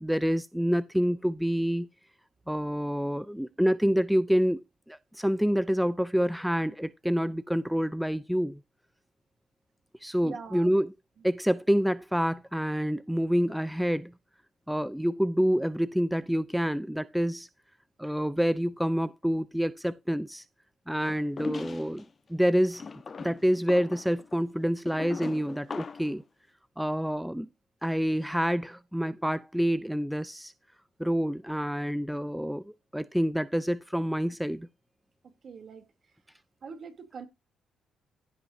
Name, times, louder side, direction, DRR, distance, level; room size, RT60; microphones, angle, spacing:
voice 1, 0.0-1.9 2.5-8.6 10.0-10.9 11.2-14.1 14.7-17.5 18.0-20.4 20.9-22.0 22.3-22.8 23.2-26.2 26.8-27.5 27.8-30.5 31.0-32.6 32.9-34.7, equal, ahead, 0.4 m, -27 dB
voice 2, 10.2-10.8 35.2-35.8 36.6-37.3, right 5 dB, 50° right, 3.0 m, -43 dB
sound 1, 21.0-22.1 22.7-26.2, left 5 dB, 40° left, 1.1 m, -40 dB
16.0 x 5.9 x 2.7 m
cardioid pair, 90°, 0 cm